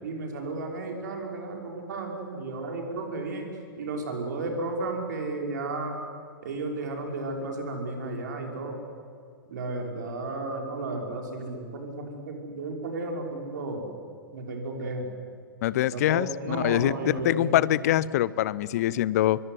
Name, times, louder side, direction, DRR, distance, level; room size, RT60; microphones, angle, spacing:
voice 1, 0.0-3.5 3.8-5.9 6.4-8.8 9.5-13.9 14.3-15.1 15.8-17.7 18.9-19.1, right 2 dB, 55° right, 2 dB, 5.6 m, -33 dB
voice 2, 15.6-19.4, left 13 dB, 45° left, 20 dB, 0.8 m, -24 dB
25.0 x 22.5 x 9.6 m, 2.3 s
figure-of-eight pair, 105°, 11 cm